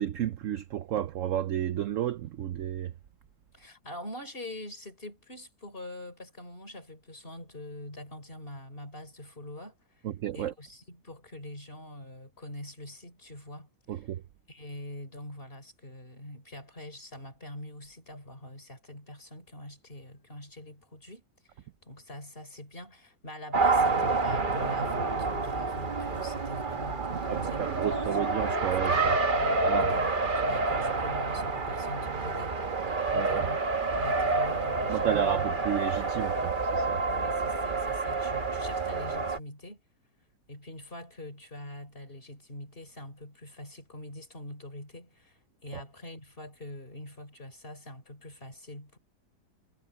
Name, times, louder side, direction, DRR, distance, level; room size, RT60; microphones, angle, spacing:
voice 1, 0.0-2.9 10.0-10.5 13.9-14.2 27.2-29.2 29.6-30.0 33.1-33.5 34.9-37.0 45.7-45.8, right 11 dB, 70° right, 0.7 m, -31 dB
voice 2, 3.5-10.1 10.3-14.1 14.5-21.2 21.6-28.1 28.8-33.6 33.9-35.3 37.1-39.8 40.5-49.0, left 1 dB, 30° left, 4.9 m, -44 dB
Race car auto racing, 23.5-39.4, right 3 dB, 35° right, 1.1 m, -28 dB
omnidirectional pair, 1.9 m